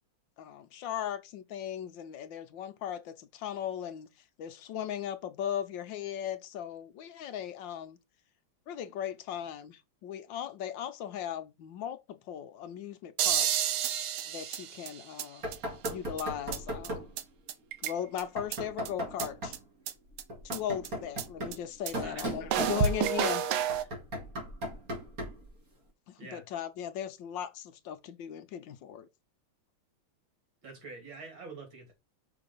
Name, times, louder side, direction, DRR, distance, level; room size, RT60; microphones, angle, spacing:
voice 1, 0.4-4.1 4.4-8.0 8.7-13.7 14.3-15.5 15.9-17.0 17.8-19.5 20.4-23.5 26.1-29.1, left 10 dB, 70° left, 1.3 m, -38 dB
sound 1, 13.2-15.2 15.5-15.6 15.8-15.9 16.2-16.3 16.5-16.6 16.8-16.9 17.2-17.3 17.5-18.2 18.5-18.6 18.9-19.0 19.2-19.3 19.5-19.6 19.9-20.0 20.2-20.3 20.5-20.6 20.8-20.9 21.2-21.3 21.5-21.6 21.9-22.0 22.2-22.3 22.5-23.8, right 9 dB, 80° right, 1.6 m, -30 dB
Knock, 15.4-17.2 18.4-19.6 20.3-23.2 23.7-25.5, equal, 40° right, 3.0 m, -37 dB
voice 2, 22.0-22.3 22.8-22.9 23.8-23.9 26.2-26.4 30.6-31.9, right 3 dB, 65° right, 3.4 m, -46 dB
5.8 x 3.9 x 5.3 m
omnidirectional pair, 2.3 m